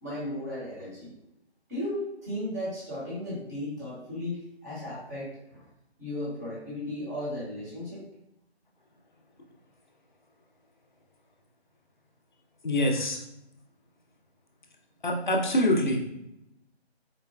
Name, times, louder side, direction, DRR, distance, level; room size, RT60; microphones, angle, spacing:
voice 1, 0.0-1.1 1.7-5.6 6.0-8.0, left 1 dB, 15° right, -10 dB, 0.9 m, -35 dB
voice 2, 12.6-13.2 15.0-16.0, left 1 dB, 45° left, 1 dB, 0.5 m, -25 dB
3.9 x 2.1 x 2.3 m, 0.84 s
figure-of-eight pair, 160°, 33 cm